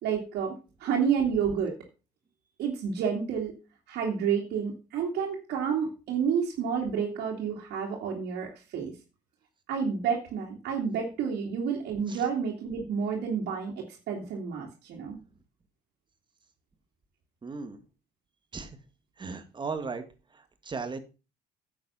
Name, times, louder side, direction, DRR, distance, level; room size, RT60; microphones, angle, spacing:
voice 1, 0.0-1.7 2.6-3.5 3.9-8.9 9.7-15.2, right 7 dB, 75° right, -3 dB, 2.9 m, -30 dB
voice 2, 17.4-17.8 18.5-18.8 19.2-20.1 20.3-21.0, right 4 dB, 25° right, 9 dB, 1.9 m, -37 dB
10.5 x 7.7 x 5.7 m, 0.32 s
cardioid pair, 110°, 17 cm